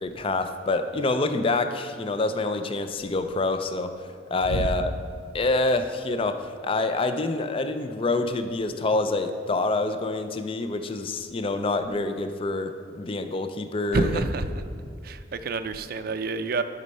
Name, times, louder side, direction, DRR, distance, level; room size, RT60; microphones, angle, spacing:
voice 1, 0.0-4.9 5.3-14.2, left 2 dB, 30° left, 9 dB, 0.4 m, -27 dB
voice 2, 13.9-14.6 15.0-16.6, right 3 dB, 50° right, 10 dB, 0.4 m, -28 dB
11.5 x 5.3 x 5.3 m, 2.1 s
head